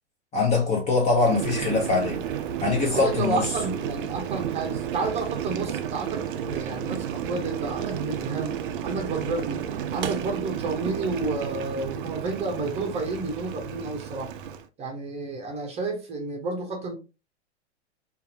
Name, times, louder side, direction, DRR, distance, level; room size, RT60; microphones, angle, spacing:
voice 1, 0.3-2.2 2.6-3.5, left 3 dB, 20° left, 0.5 m, -23 dB
Boiling, 1.2-14.7, right 9 dB, 50° right, 0.4 m, -32 dB
voice 2, 3.0-8.6 8.8-9.6 9.9-14.3 14.8-16.9, right 3 dB, 20° right, 0.7 m, -31 dB
2.7 x 2.5 x 2.6 m
hypercardioid pair, 120°, 35 cm